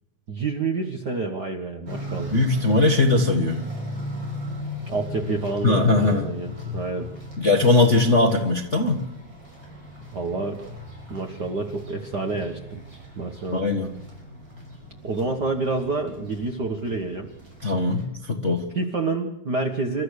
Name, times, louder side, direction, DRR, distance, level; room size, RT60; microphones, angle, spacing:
voice 1, 0.3-2.3 4.9-7.1 10.1-10.6 11.1-12.8 13.2-13.7 15.0-17.3 18.7-20.0, right 3 dB, 70° right, 2 dB, 0.9 m, -28 dB
sound 1, 1.9-18.0, equal, 25° right, 6.1 m, -37 dB
voice 2, 2.3-3.6 5.6-6.3 7.4-9.0 13.5-13.9 17.6-18.6, left 3 dB, 75° left, 1 dB, 0.6 m, -20 dB
29.5 x 13.5 x 6.6 m, 0.86 s
omnidirectional pair, 4.0 m